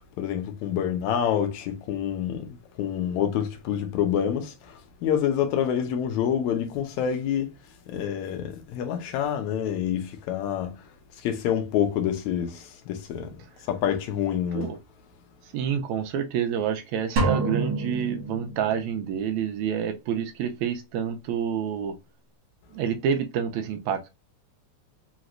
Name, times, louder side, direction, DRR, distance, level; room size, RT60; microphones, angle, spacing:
voice 1, 0.2-2.5 2.8-7.5 7.9-10.7 11.2-13.4 13.7-14.7, left 9 dB, 80° left, 2.0 m, -27 dB
voice 2, 15.5-21.9 22.7-24.1, right 8 dB, 80° right, 1.9 m, -28 dB
sound 1, 17.2-19.0, right 3 dB, 60° right, 1.5 m, -27 dB
5.1 x 3.0 x 2.5 m
omnidirectional pair, 3.4 m